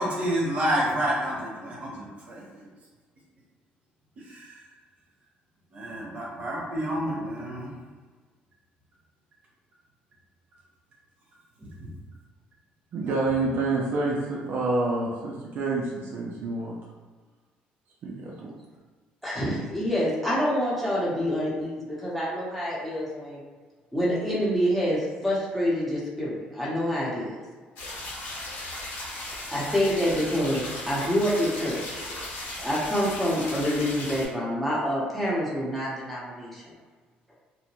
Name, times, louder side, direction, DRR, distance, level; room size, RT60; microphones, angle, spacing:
voice 1, 0.0-2.7 4.2-4.6 5.7-7.7 11.6-12.0 13.0-13.2, equal, 40° right, -3 dB, 0.9 m, -30 dB
voice 2, 12.9-16.7 18.0-18.5, right 2 dB, 60° right, -3 dB, 0.5 m, -28 dB
voice 3, 19.2-23.4 23.9-27.4 29.5-32.0 32.6-36.6, equal, 5° left, -7 dB, 0.9 m, -27 dB
sound 1, 27.8-34.3, left 1 dB, 85° left, 1.5 m, -36 dB
2.8 x 2.1 x 2.9 m, 1.4 s
cardioid pair, 105°, 4 cm